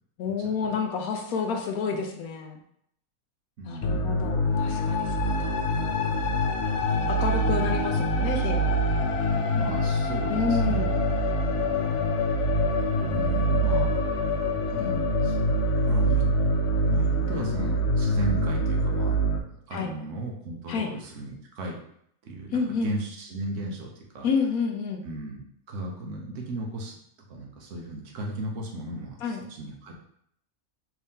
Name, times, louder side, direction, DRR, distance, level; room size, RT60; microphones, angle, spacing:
voice 1, 0.2-2.6 3.7-5.5 7.1-8.8 10.3-10.9 14.8-15.0 19.7-19.9 20.7-20.9 22.5-22.9 24.2-25.0 29.2-29.5, left 5 dB, 85° left, 3 dB, 1.2 m, -29 dB
voice 2, 3.6-4.4 6.8-7.2 9.3-10.9 11.5-11.9 13.0-13.9 14.7-14.9 15.2-15.4 15.8-16.2 16.9-19.2 19.7-21.8 22.2-24.3 25.0-25.4 25.7-27.0 27.3-29.9, right 1 dB, 60° right, 0 dB, 1.2 m, -36 dB
sound 1, 3.8-19.4, equal, 65° left, 0.7 m, -25 dB
4.6 x 2.7 x 3.6 m, 0.70 s
omnidirectional pair, 1.5 m